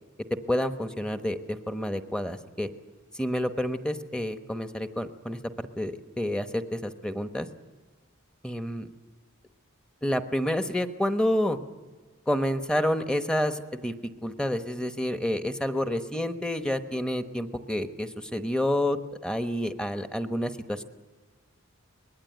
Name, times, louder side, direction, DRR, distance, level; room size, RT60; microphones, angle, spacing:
voice 1, 0.5-2.7 3.1-5.9 6.2-7.5 8.4-8.9 10.0-11.6 12.3-13.9 14.2-20.8, left 1 dB, 5° left, 8 dB, 1.0 m, -29 dB
25.0 x 20.0 x 9.2 m, 1.4 s
head